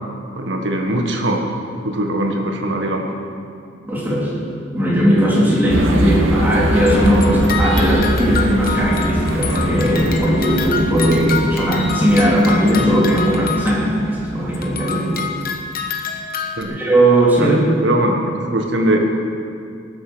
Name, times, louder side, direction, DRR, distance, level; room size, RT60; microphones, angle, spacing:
voice 1, 0.3-1.5 1.8-3.1 11.1-11.3 16.6-16.8 17.4-17.5 17.8-19.0, right 1 dB, 65° right, 2 dB, 1.5 m, -21 dB
voice 2, 3.8-4.4 4.7-15.2 16.7-17.6, right 1 dB, 10° right, -5 dB, 3.2 m, -17 dB
sound 1, 5.7-15.3, right 1 dB, 80° right, 2.0 m, -23 dB
sound 2, 6.7-14.1 14.5-16.6, left 6 dB, 50° left, 1.1 m, -28 dB
20.0 x 8.3 x 6.3 m, 2.4 s
head